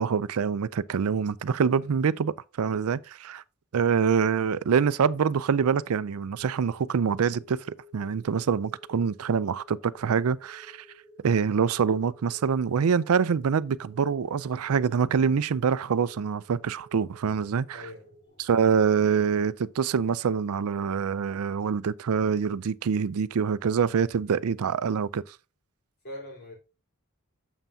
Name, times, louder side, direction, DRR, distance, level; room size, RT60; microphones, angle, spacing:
voice 1, 0.0-3.4 3.7-10.9 11.2-17.8 18.4-25.2, right 6 dB, 75° right, 0.4 m, -25 dB
sound 1, 8.5-18.3, equal, 15° left, 1.7 m, -55 dB
voice 2, 17.7-18.5 26.0-26.5, left 1 dB, 45° left, 3.6 m, -43 dB
9.0 x 7.2 x 2.7 m
head